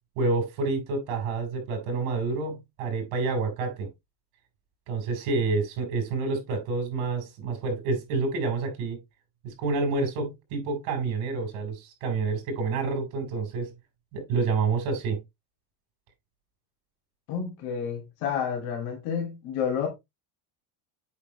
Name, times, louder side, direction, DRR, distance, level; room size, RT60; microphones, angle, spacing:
voice 1, 0.2-3.9 4.9-9.0 9.4-13.7 14.1-15.2, right 4 dB, 70° right, 4.7 m, -28 dB
voice 2, 17.3-19.9, left 7 dB, 80° left, 2.8 m, -30 dB
8.3 x 6.0 x 3.2 m
cardioid pair, 145°, 48 cm